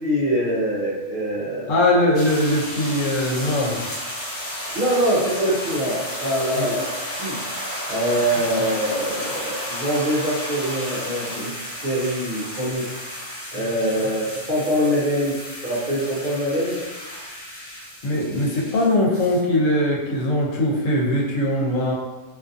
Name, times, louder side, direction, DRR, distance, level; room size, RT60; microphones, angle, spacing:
voice 1, 0.0-2.2 4.7-7.4 7.9-11.5 11.8-12.9 13.5-16.8, equal, 50° right, -7 dB, 0.6 m, -24 dB
voice 2, 1.7-3.8 6.5-6.7 18.0-21.9, left 1 dB, 90° left, -3 dB, 1.0 m, -21 dB
sound 1, 2.1-19.4, equal, 20° left, 0.9 m, -33 dB
2.5 x 2.4 x 2.5 m, 1.2 s
omnidirectional pair, 1.3 m